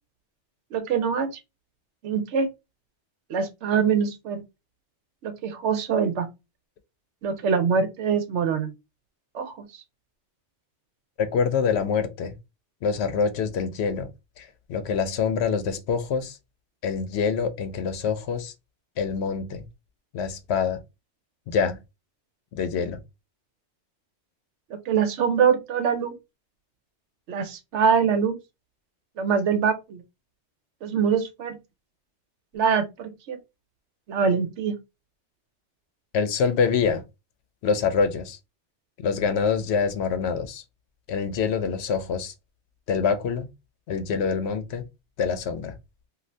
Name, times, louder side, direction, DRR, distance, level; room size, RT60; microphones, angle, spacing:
voice 1, 0.7-1.3 2.0-2.5 3.3-4.4 5.2-6.3 7.2-8.7 9.3-9.7 24.7-26.2 27.3-28.3 29.2-30.0 30.8-31.6 32.5-33.4 34.1-34.7, right 6 dB, 85° right, 1.0 m, -24 dB
voice 2, 11.2-12.4 12.8-14.1 14.4-16.4 16.8-18.5 19.0-19.6 20.1-20.8 21.5-21.8 22.5-23.0 36.1-37.0 37.6-38.4 39.0-40.6 41.1-42.3 42.9-43.5 43.9-44.8 45.2-45.7, left 6 dB, 70° left, 0.8 m, -25 dB
2.6 x 2.4 x 3.2 m
omnidirectional pair, 1.2 m